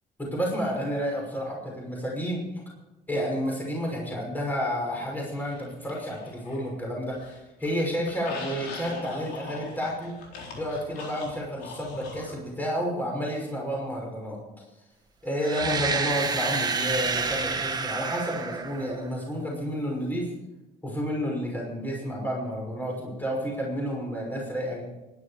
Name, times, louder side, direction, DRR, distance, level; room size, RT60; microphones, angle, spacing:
voice 1, 0.2-2.5 3.1-10.2 10.5-14.4 15.2-20.3 20.8-24.8, equal, 10° left, -2 dB, 5.7 m, -30 dB
sound 1, 5.4-6.7 7.0-12.4, left 3 dB, 90° left, 4.0 m, -41 dB
sound 2, 15.4-19.3, right 4 dB, 25° right, 1.4 m, -29 dB
24.5 x 11.0 x 4.9 m, 1.0 s
cardioid pair, 110°, 17 cm